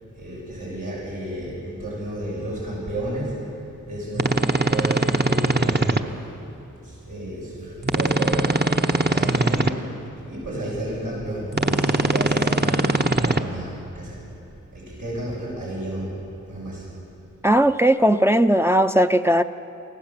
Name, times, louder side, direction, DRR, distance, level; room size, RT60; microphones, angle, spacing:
voice 1, 0.1-10.0 10.3-16.1 16.5-16.9, right 1 dB, 85° right, -6 dB, 6.9 m, -32 dB
sound 1, 4.1-6.0 7.8-9.7 11.5-13.4, right 2 dB, 30° right, 1.0 m, -21 dB
voice 2, 17.4-19.4, right 1 dB, 10° right, 7 dB, 0.6 m, -17 dB
24.5 x 15.5 x 7.5 m, 2.8 s
cardioid pair, 45°, 32 cm